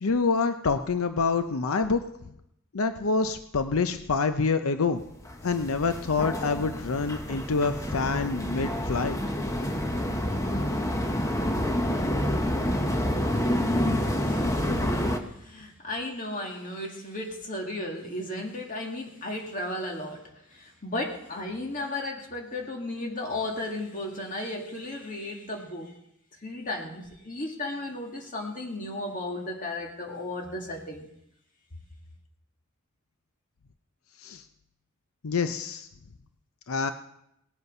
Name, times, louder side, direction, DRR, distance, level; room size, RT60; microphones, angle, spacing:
voice 1, 0.0-2.0 2.7-5.0 5.4-9.2 34.2-34.4 35.2-35.9 36.7-36.9, left 4 dB, 90° left, 9 dB, 0.7 m, -26 dB
sound 1, 5.2-15.2, equal, 15° left, 0.9 m, -28 dB
voice 2, 14.2-15.1 15.4-26.0 26.4-31.1, left 1 dB, 40° left, 1 dB, 2.1 m, -35 dB
18.5 x 8.1 x 5.5 m, 0.80 s
head